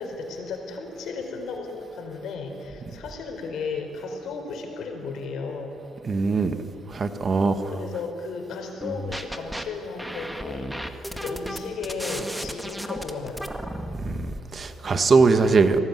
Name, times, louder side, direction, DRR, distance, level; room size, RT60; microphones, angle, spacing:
voice 1, 0.0-5.8 7.7-10.7 11.1-13.5, left 4 dB, 75° left, 4 dB, 4.6 m, -34 dB
voice 2, 6.0-6.6 6.9-7.7 14.0-15.8, right 4 dB, 40° right, 9 dB, 1.8 m, -21 dB
sound 1, 8.8-9.6 10.0-14.4, equal, 5° right, 2.0 m, -33 dB
24.0 x 18.0 x 9.6 m, 2.6 s
cardioid pair, 90°, 0 cm